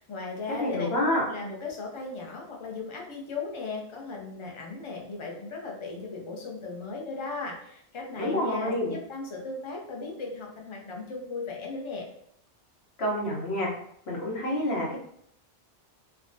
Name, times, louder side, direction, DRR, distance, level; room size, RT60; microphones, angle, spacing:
voice 1, 0.0-12.1, left 3 dB, 40° left, -1 dB, 0.5 m, -37 dB
voice 2, 0.6-1.2 8.2-8.9 13.0-13.7 14.1-15.0, left 1 dB, 75° left, -4 dB, 1.1 m, -28 dB
3.3 x 2.1 x 2.5 m, 0.70 s
omnidirectional pair, 1.1 m